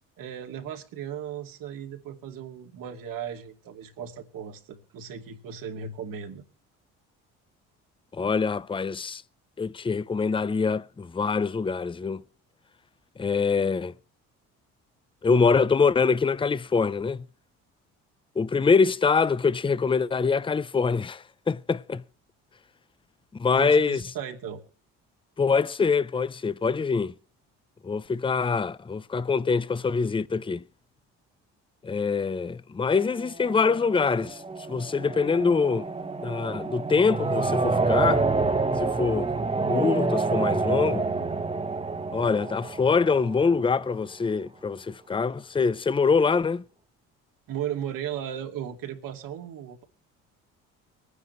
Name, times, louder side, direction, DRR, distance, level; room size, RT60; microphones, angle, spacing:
voice 1, 0.2-6.4 23.5-24.6 47.5-49.8, right 9 dB, 70° right, 2.5 m, -36 dB
voice 2, 8.1-9.2 9.6-12.2 13.2-13.9 15.2-17.2 18.4-22.0 23.3-24.0 25.4-27.1 27.8-30.6 31.8-34.4 34.7-35.9 36.2-38.3 38.8-39.3 39.7-41.1 42.1-46.6, left 5 dB, 15° left, 0.6 m, -24 dB
sound 1, 33.0-43.8, right 3 dB, 15° right, 1.3 m, -28 dB
24.0 x 9.6 x 3.2 m
supercardioid pair, 65°, 34 cm